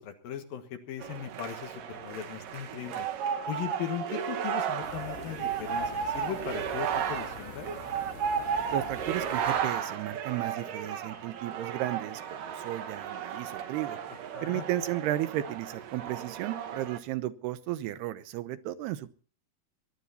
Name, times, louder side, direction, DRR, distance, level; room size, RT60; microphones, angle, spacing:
voice 1, 0.0-3.1 3.5-7.7 14.3-14.6, left 10 dB, 65° left, 6 dB, 3.1 m, -38 dB
sound 1, 1.0-17.0, right 8 dB, 65° right, 2.8 m, -34 dB
sound 2, 4.8-9.8, left 7 dB, 85° left, 3.7 m, -46 dB
voice 2, 8.7-14.0 14.4-19.1, right 14 dB, 85° right, 12 dB, 2.9 m, -34 dB
21.0 x 11.5 x 4.2 m, 0.40 s
omnidirectional pair, 4.6 m